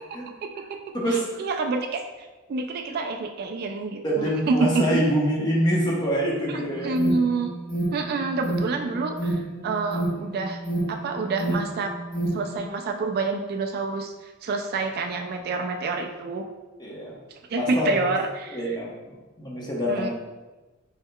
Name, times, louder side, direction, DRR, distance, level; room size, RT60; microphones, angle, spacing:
voice 1, 0.4-0.8 1.1-5.0 6.8-7.5 7.9-10.6 10.9-11.9 12.3-16.4 17.5-18.8 19.9-20.1, right 3 dB, 50° right, 4 dB, 0.3 m, -28 dB
voice 2, 0.9-1.3 4.0-6.9 16.8-17.2 17.5-18.0 18.5-20.1, equal, 20° left, -4 dB, 0.9 m, -25 dB
Alarm, 6.7-12.6, right 2 dB, 45° left, 1.2 m, -29 dB
5.2 x 3.5 x 2.2 m, 1.2 s
head